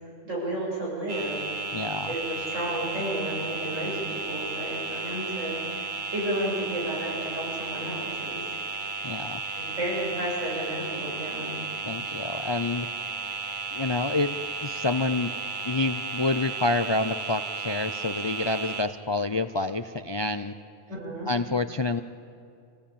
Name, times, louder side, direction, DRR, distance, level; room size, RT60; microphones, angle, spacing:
voice 1, 0.2-1.5 2.1-8.4 8.7-8.8 9.5-11.5 20.9-21.3, right 1 dB, 90° right, -5 dB, 8.2 m, -32 dB
sound 1, 1.1-18.8, right 4 dB, 40° right, 1.4 m, -34 dB
voice 2, 1.7-2.1 9.0-9.4 11.8-12.9 13.7-15.4 15.6-20.5 21.3-22.0, left 2 dB, 40° left, 10 dB, 0.3 m, -28 dB
26.5 x 17.0 x 8.6 m, 2.5 s
omnidirectional pair, 1.3 m